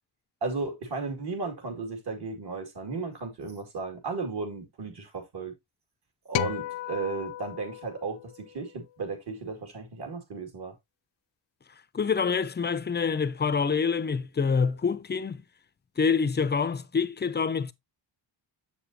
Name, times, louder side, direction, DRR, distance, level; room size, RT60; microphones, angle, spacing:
voice 1, 0.4-5.5 6.3-10.7, right 4 dB, 60° right, 2.4 m, -35 dB
sound 1, 6.3-8.8, left 15 dB, 80° left, 0.5 m, -35 dB
voice 2, 11.9-15.4 16.0-17.7, left 5 dB, 25° left, 0.4 m, -26 dB
7.0 x 7.0 x 2.8 m
wide cardioid pair, 135°, 44 cm